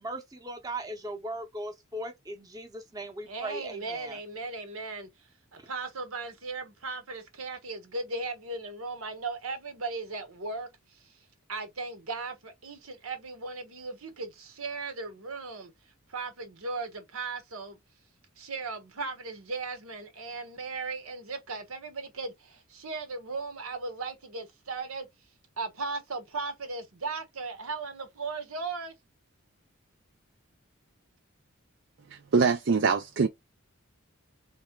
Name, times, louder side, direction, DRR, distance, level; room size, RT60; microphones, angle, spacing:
voice 1, 0.0-4.2, right 1 dB, 15° right, 0.9 m, -38 dB
voice 2, 3.3-5.1 5.5-10.7 11.5-15.7 16.1-17.8 18.4-25.1 25.6-28.9, right 3 dB, 80° right, 1.3 m, -37 dB
voice 3, 32.1-33.3, right 5 dB, 55° right, 0.5 m, -24 dB
3.4 x 3.2 x 4.5 m
head